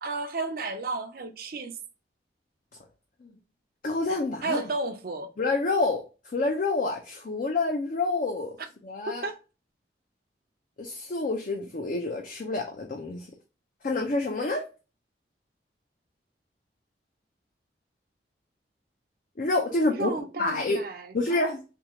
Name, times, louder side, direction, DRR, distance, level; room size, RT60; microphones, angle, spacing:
voice 1, 0.0-1.7 4.4-5.3 9.1-9.3 19.9-21.5, right 3 dB, 55° right, 0.5 m, -33 dB
voice 2, 3.8-4.6 5.4-6.0 6.3-8.5 8.8-9.2 10.8-13.3 13.8-14.7 19.4-20.1 20.4-20.8 21.1-21.6, left 2 dB, 50° left, 0.5 m, -28 dB
3.5 x 2.3 x 2.9 m
head